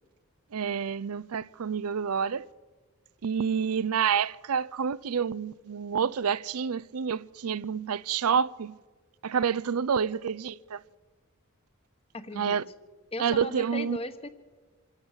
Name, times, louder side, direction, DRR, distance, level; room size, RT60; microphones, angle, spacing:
voice 1, 0.5-2.5 3.2-8.8 9.2-10.8 12.3-12.6 13.2-14.0, right 7 dB, 85° right, 0.5 m, -28 dB
voice 2, 12.1-12.6 13.1-14.3, left 2 dB, 25° left, 1.2 m, -37 dB
26.5 x 13.0 x 8.1 m
head